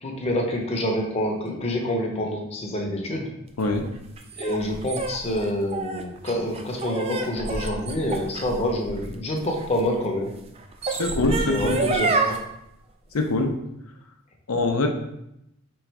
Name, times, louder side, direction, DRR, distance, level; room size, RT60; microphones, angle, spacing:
voice 1, 0.0-3.3 4.4-10.3 11.2-12.4, left 1 dB, 30° left, 0 dB, 0.7 m, -27 dB
sound 1, 3.6-9.8 10.6-12.4, right 3 dB, 25° right, 0.3 m, -28 dB
voice 2, 10.9-11.8 13.1-13.6 14.5-14.9, left 2 dB, 85° left, 4 dB, 0.6 m, -23 dB
3.5 x 3.1 x 4.6 m, 0.83 s
head